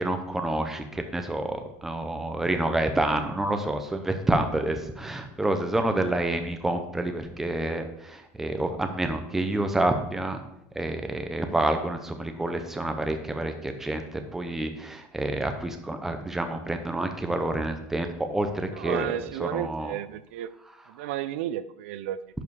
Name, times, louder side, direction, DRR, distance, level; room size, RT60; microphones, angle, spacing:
voice 1, 0.0-10.4 10.8-19.1 19.4-19.9, right 1 dB, 5° right, 6 dB, 0.7 m, -28 dB
voice 2, 18.7-20.5 20.9-22.2, right 12 dB, 80° right, 14 dB, 0.5 m, -32 dB
11.0 x 4.8 x 4.8 m, 0.83 s
cardioid pair, 170°, 7 cm